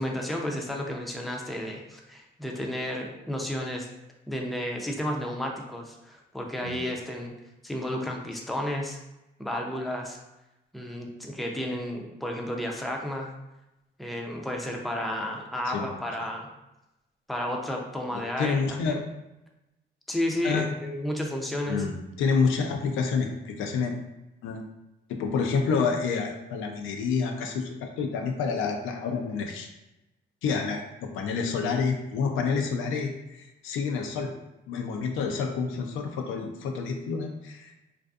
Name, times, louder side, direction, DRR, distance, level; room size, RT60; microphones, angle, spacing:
voice 1, 0.0-3.9 4.3-7.3 7.6-9.0 9.4-10.2 10.7-13.3 14.0-16.5 17.3-19.0 20.1-21.8, left 1 dB, ahead, 0 dB, 0.4 m, -32 dB
voice 2, 18.1-19.0 20.4-20.7 21.7-23.9 24.4-24.6 25.1-29.7 30.4-34.3 34.7-37.8, left 5 dB, 85° left, 3 dB, 0.4 m, -28 dB
2.5 x 2.4 x 2.3 m, 0.94 s
cardioid pair, 90°, 20 cm